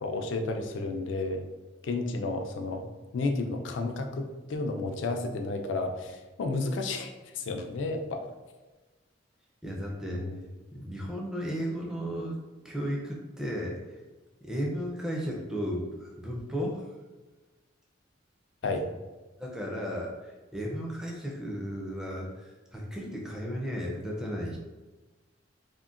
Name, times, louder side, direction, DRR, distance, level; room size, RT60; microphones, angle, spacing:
voice 1, 0.0-1.4 1.8-8.2 10.1-10.4 18.6-18.9, left 3 dB, 80° left, 4 dB, 0.4 m, -32 dB
voice 2, 9.6-10.3 10.7-12.4 12.6-13.8 14.4-16.8 18.7-18.8 19.4-24.6, equal, 5° right, -2 dB, 0.4 m, -34 dB
3.7 x 2.1 x 2.4 m, 1.2 s
head